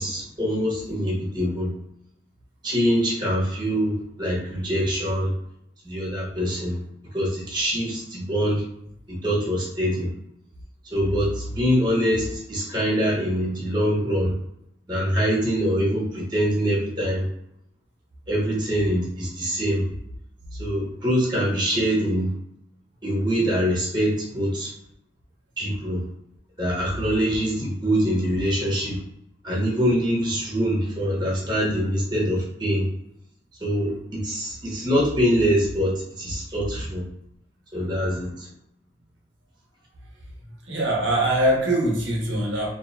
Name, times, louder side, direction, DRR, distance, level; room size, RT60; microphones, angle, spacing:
voice 1, 0.0-1.7 2.6-5.3 5.8-6.8 7.0-8.7 9.1-10.1 10.8-14.3 14.9-17.3 18.3-19.8 20.6-22.3 23.0-24.7 25.6-26.0 26.6-29.0 29.4-32.9 33.6-37.0 37.7-38.5, equal, 25° right, -6 dB, 1.0 m, -24 dB
voice 2, 40.7-42.7, right 1 dB, 85° right, -2 dB, 0.6 m, -22 dB
2.7 x 2.2 x 2.2 m, 0.77 s
head